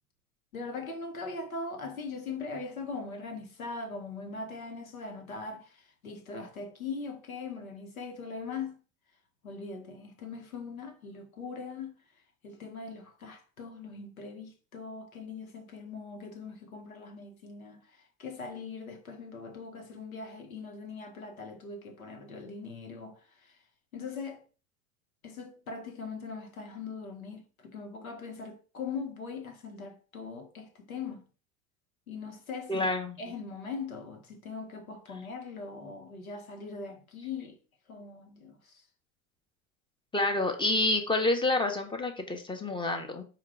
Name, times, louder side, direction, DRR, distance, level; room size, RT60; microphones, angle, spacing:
voice 1, 0.5-5.8 6.0-8.8 9.4-12.0 12.4-17.8 18.2-23.5 23.9-24.4 25.2-31.3 32.1-32.9 33.2-37.6 37.9-38.8, left 4 dB, 90° left, 1.0 m, -41 dB
voice 2, 32.7-33.2 40.1-43.2, left 2 dB, 10° left, 0.8 m, -28 dB
4.7 x 2.4 x 4.7 m
hypercardioid pair, 80°, 41 cm